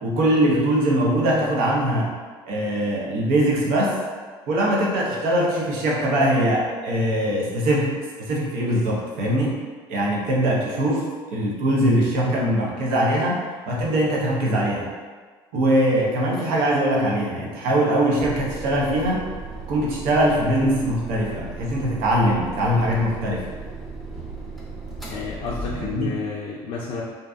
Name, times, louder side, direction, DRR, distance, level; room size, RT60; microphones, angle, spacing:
voice 1, 0.0-2.1 2.5-4.0 4.5-7.9 8.2-9.6 9.9-11.0 11.3-13.4 13.7-14.9 15.5-19.2 19.7-23.5 25.8-26.1, right 1 dB, 85° right, -3 dB, 0.6 m, -22 dB
sound 1, 18.2-26.2, right 3 dB, ahead, 0.5 m, -36 dB
voice 2, 25.1-27.0, left 5 dB, 60° left, -5 dB, 0.4 m, -30 dB
2.6 x 2.2 x 2.4 m, 1.5 s
cardioid pair, 115°, 10 cm